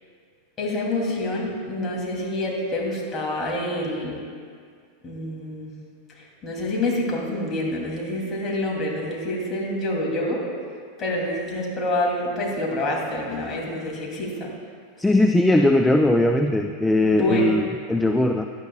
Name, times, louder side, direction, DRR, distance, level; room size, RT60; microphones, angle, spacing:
voice 1, 0.6-4.2 5.0-5.7 6.2-10.4 11.0-14.5 17.0-17.5, left 1 dB, 25° left, -2 dB, 3.0 m, -27 dB
voice 2, 15.0-18.5, left 1 dB, 5° left, 5 dB, 0.4 m, -19 dB
16.5 x 11.0 x 2.4 m, 2.1 s
figure-of-eight pair, 90°, 0 cm